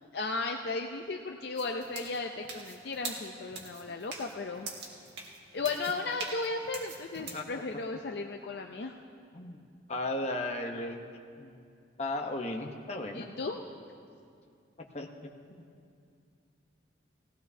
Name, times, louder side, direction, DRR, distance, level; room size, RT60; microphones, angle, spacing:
voice 1, 0.1-4.7 5.5-8.9 13.1-13.6, left 3 dB, 60° left, 3 dB, 0.5 m, -35 dB
sound 1, 1.6-7.5, right 4 dB, 65° right, 1.8 m, -43 dB
voice 2, 9.9-11.0 11.4-11.5 12.0-13.3 14.9-15.3, left 2 dB, 35° left, 2 dB, 0.9 m, -35 dB
19.0 x 16.5 x 2.8 m, 2.4 s
head